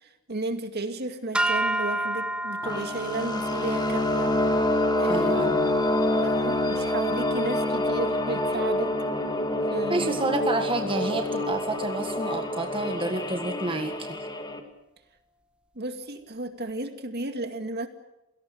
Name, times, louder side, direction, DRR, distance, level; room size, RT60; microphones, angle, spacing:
voice 1, 0.0-4.4 4.9-5.6 6.2-8.9 9.7-10.2 15.8-17.9, right 2 dB, 50° right, 7 dB, 2.2 m, -33 dB
sound 1, 1.3-7.7, right 1 dB, 5° right, 1.4 m, -32 dB
sound 2, 2.6-14.6, left 1 dB, 20° left, 2.2 m, -27 dB
voice 2, 5.1-5.7 9.9-14.3, right 2 dB, 25° right, 5 dB, 1.7 m, -29 dB
27.5 x 18.0 x 7.9 m, 0.95 s
head